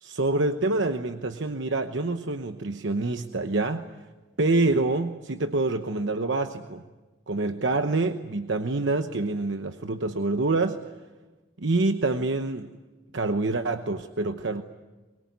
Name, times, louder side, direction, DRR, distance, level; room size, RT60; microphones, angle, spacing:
voice 1, 0.0-3.9 4.4-6.8 7.3-10.8 11.6-12.7 13.1-14.6, right 2 dB, 65° right, 7 dB, 1.0 m, -26 dB
23.5 x 22.0 x 9.5 m, 1.2 s
head